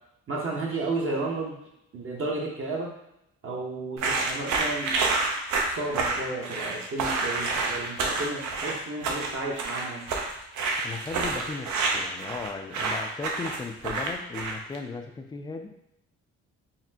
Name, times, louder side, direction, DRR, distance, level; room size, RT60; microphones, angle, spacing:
voice 1, 0.3-1.6 1.9-2.9 3.4-4.9 5.7-10.0, right 2 dB, 45° right, -3 dB, 0.8 m, -32 dB
sound 1, 4.0-14.8, right 3 dB, 70° right, 0.6 m, -28 dB
voice 2, 10.8-15.7, left 4 dB, 15° left, 5 dB, 0.3 m, -36 dB
4.1 x 2.1 x 2.7 m, 0.83 s
cardioid pair, 90°, 30 cm